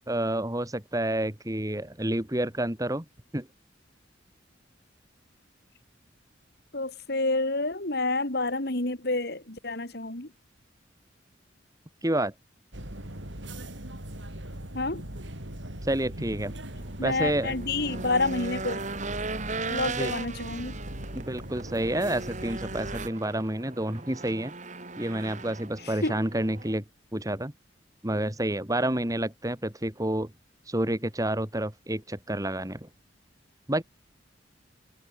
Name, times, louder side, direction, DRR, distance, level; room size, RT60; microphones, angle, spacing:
voice 1, 0.1-3.1 3.3-3.5 12.0-12.3 15.8-16.5 17.0-17.5 19.9-20.2 21.1-24.5 25.0-26.8 27.1-27.5 28.0-30.3 30.7-32.9 33.7-33.8, right 1 dB, 20° right, 2.5 m, -29 dB
voice 2, 6.7-10.3 14.7-15.0 17.0-18.8 19.7-20.8 26.0-26.1, left 2 dB, 55° left, 3.1 m, -29 dB
sound 1, 12.7-23.1, right 1 dB, 75° right, 6.7 m, -40 dB
Race car auto racing / Engine, 16.7-26.8, right 3 dB, 40° right, 3.4 m, -38 dB
head